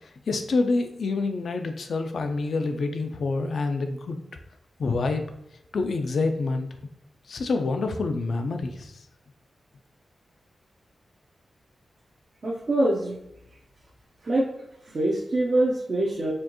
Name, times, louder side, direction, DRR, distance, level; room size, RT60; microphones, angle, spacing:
voice 1, 0.3-4.2 4.8-5.2 5.7-6.7 7.3-8.9, left 3 dB, 70° left, 6 dB, 0.5 m, -27 dB
voice 2, 12.4-13.2 14.2-14.4 14.9-16.3, right 1 dB, 55° right, -5 dB, 0.8 m, -24 dB
4.3 x 2.6 x 2.9 m, 0.80 s
cardioid pair, 70°, 0 cm